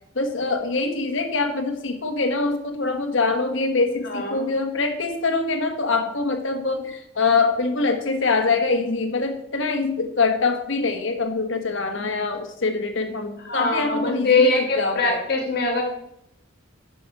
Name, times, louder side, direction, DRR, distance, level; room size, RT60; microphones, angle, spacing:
voice 1, 0.1-15.2, left 3 dB, 70° left, 6 dB, 1.3 m, -24 dB
voice 2, 4.0-4.4 13.4-15.8, left 3 dB, 50° left, 2 dB, 2.0 m, -22 dB
11.0 x 6.1 x 4.8 m, 0.79 s
head